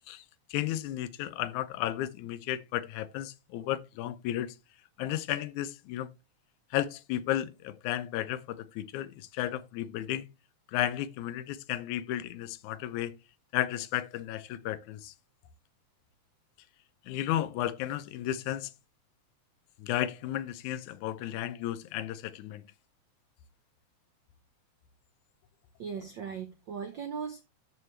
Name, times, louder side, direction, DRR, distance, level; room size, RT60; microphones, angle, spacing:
voice 1, 0.5-4.5 5.0-6.1 6.7-10.3 10.7-13.1 13.5-15.1 17.1-18.7 19.8-22.6, left 13 dB, 90° left, 2.1 m, -33 dB
voice 2, 25.8-27.4, right 6 dB, 75° right, 1.1 m, -38 dB
12.5 x 5.5 x 3.2 m
omnidirectional pair, 3.3 m